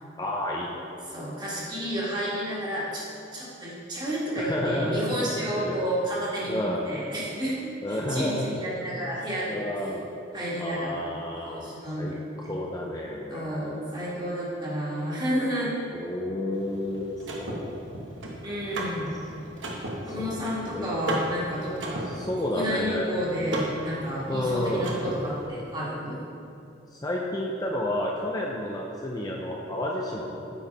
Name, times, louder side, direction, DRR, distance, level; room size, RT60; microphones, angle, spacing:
voice 1, 0.2-0.9 4.4-5.1 5.6-5.8 6.5-6.9 7.8-8.5 9.5-10.1 10.6-13.9 15.9-18.1 19.8-20.5 20.8-20.9 22.1-23.1 24.3-24.9 26.9-30.5, left 1 dB, 20° left, -2 dB, 0.5 m, -31 dB
voice 2, 1.1-3.0 3.3-9.6 10.3-12.5 13.3-15.7 18.4-19.1 20.0-22.1 22.5-26.2, equal, 25° right, -7 dB, 1.7 m, -31 dB
Car / Mechanisms, 16.5-25.5, right 1 dB, 90° right, 1.1 m, -36 dB
8.7 x 4.6 x 4.6 m, 2.7 s
head